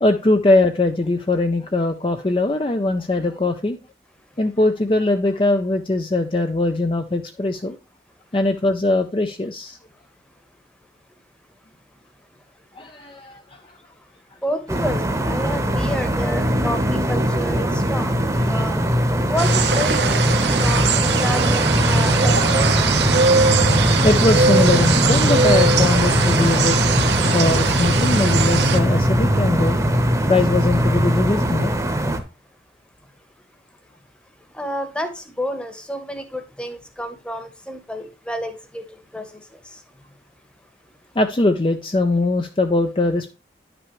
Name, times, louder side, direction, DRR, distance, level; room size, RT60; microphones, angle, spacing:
voice 1, 0.0-3.8 4.4-7.8 8.3-9.8 12.8-13.6 24.0-26.8 27.3-29.8 30.3-31.7 41.2-43.3, left 2 dB, 30° left, 0.5 m, -21 dB
voice 2, 12.8-22.8 33.7-33.9 34.4-40.2 40.6-40.7, equal, 5° left, 1.1 m, -31 dB
sound 1, 14.7-32.2, equal, 15° right, 1.0 m, -20 dB
sound 2, 19.4-28.8, right 5 dB, 75° right, 1.0 m, -21 dB
10.5 x 6.0 x 3.1 m
head